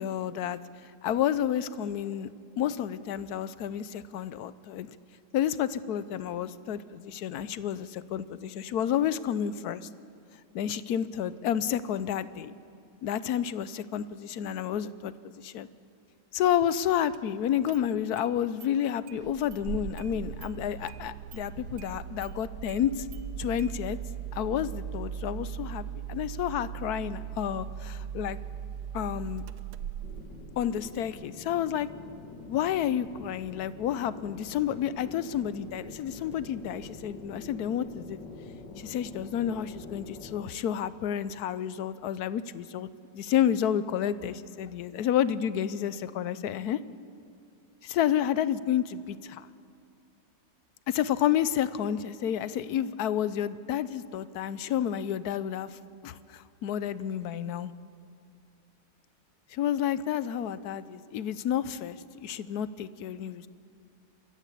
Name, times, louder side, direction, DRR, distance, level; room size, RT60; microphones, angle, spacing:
voice 1, 0.0-2.3 2.6-4.9 5.3-9.9 10.5-12.5 13.0-15.7 16.3-23.1 23.4-24.0 24.3-28.4 28.9-29.4 30.6-31.9 32.5-38.2 38.8-42.9 43.1-46.8 47.8-49.5 50.9-57.7 59.5-63.5, left 10 dB, 70° left, 15 dB, 1.1 m, -30 dB
Engine starting, 17.1-17.2 17.7-18.3 18.6-18.7 19.1-31.0, right 8 dB, 70° right, 1.2 m, -39 dB
sound 1, 30.0-40.5, left 3 dB, 85° left, 2.2 m, -46 dB
28.5 x 13.5 x 8.4 m, 2.4 s
omnidirectional pair, 1.9 m